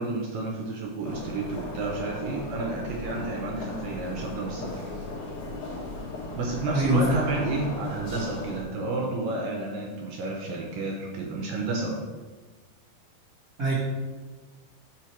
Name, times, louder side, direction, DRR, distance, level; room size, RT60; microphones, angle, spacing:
voice 1, 0.0-4.9 6.3-12.0, right 3 dB, 80° right, 0 dB, 2.2 m, -31 dB
sound 1, 1.0-8.6, left 2 dB, 60° left, 1.5 m, -36 dB
voice 2, 6.7-7.1 13.6-13.7, right 1 dB, 60° right, -9 dB, 0.9 m, -23 dB
5.6 x 5.5 x 4.4 m, 1.3 s
omnidirectional pair, 4.4 m